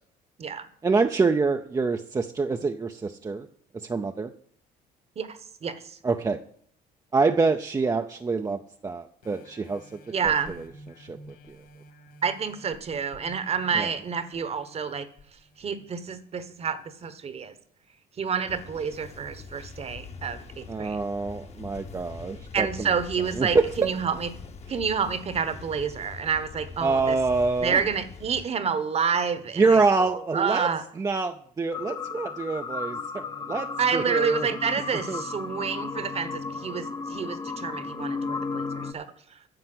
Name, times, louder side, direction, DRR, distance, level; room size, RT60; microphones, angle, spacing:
voice 1, 0.8-3.5 3.7-4.3 6.0-6.4 7.1-9.8 10.2-10.3 11.0-11.2 11.5-11.6 13.7-13.9 20.7-22.9 23.4-23.9 26.8-27.8 29.6-34.5 35.1-35.2, right 4 dB, 20° right, 5 dB, 0.6 m, -26 dB
voice 2, 5.2-6.0 10.1-10.6 12.2-15.1 15.6-17.5 18.2-21.0 22.5-24.3 24.7-27.2 27.6-30.8 33.8-39.4, right 6 dB, 35° right, 13 dB, 1.1 m, -29 dB
sound 1, 9.2-16.4 16.9-17.0, equal, 65° left, 2.9 m, -51 dB
sound 2, 18.5-28.5, left 4 dB, 40° left, 1.1 m, -43 dB
sound 3, 31.7-38.9, left 4 dB, 25° left, 0.8 m, -34 dB
9.9 x 7.0 x 7.8 m, 0.62 s
cardioid pair, 110°, 17 cm